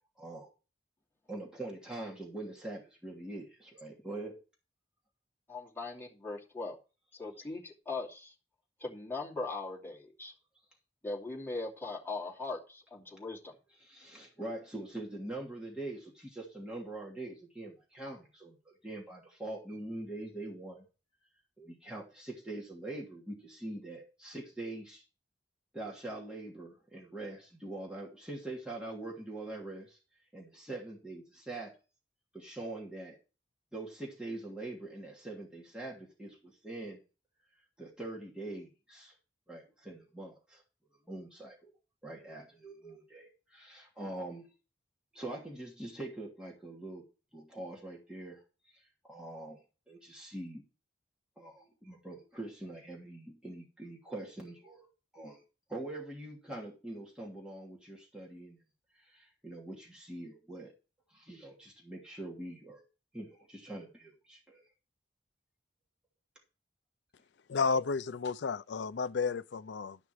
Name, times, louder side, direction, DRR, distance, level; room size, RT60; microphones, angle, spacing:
voice 1, 0.2-0.5 1.3-4.4 13.8-20.9 21.6-25.0 25.7-30.0 30.3-31.7 32.3-33.2 33.7-37.0 37.8-39.1 39.5-40.6 41.1-41.7 42.0-44.5 45.1-47.0 47.3-48.4 48.7-48.8 49.1-49.6 49.9-50.6 51.4-54.9 55.1-55.4 55.7-58.6 58.9-60.7 61.1-62.8 63.1-64.6, right 2 dB, 5° right, 2.9 m, -43 dB
voice 2, 5.5-6.8 7.1-8.3 8.8-10.3 11.0-13.5, left 3 dB, 10° left, 2.7 m, -40 dB
voice 3, 67.5-70.0, left 5 dB, 75° left, 0.5 m, -32 dB
12.5 x 5.9 x 4.8 m
head